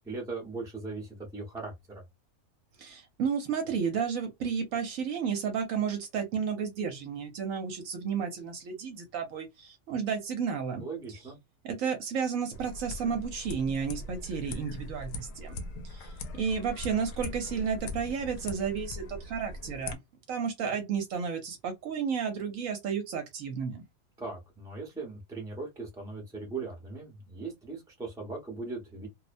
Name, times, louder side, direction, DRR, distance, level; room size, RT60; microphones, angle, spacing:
voice 1, 0.0-2.0 10.8-11.4 24.2-29.1, right 3 dB, 5° right, 0.6 m, -39 dB
voice 2, 2.8-10.8 11.6-15.6 15.8-20.0 20.3-23.8, right 6 dB, 65° right, 0.9 m, -32 dB
sound 1, 12.5-20.0, left 2 dB, 85° left, 1.1 m, -40 dB
2.6 x 2.1 x 2.5 m
omnidirectional pair, 1.6 m